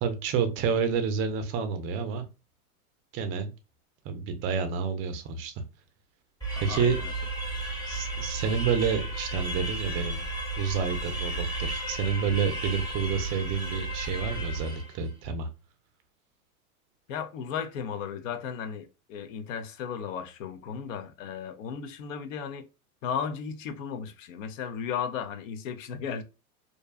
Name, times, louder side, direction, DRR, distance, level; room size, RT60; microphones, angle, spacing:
voice 1, 0.0-2.3 3.1-3.5 4.0-5.5 6.6-7.0 7.9-10.3 10.6-15.5, right 6 dB, 30° right, 0.4 m, -29 dB
sound 1, 6.4-15.0, right 2 dB, 10° left, 0.9 m, -33 dB
voice 2, 6.5-7.1 17.1-22.7 23.0-26.2, left 7 dB, 60° left, 0.6 m, -35 dB
2.6 x 2.2 x 2.2 m
hypercardioid pair, 120°, 44 cm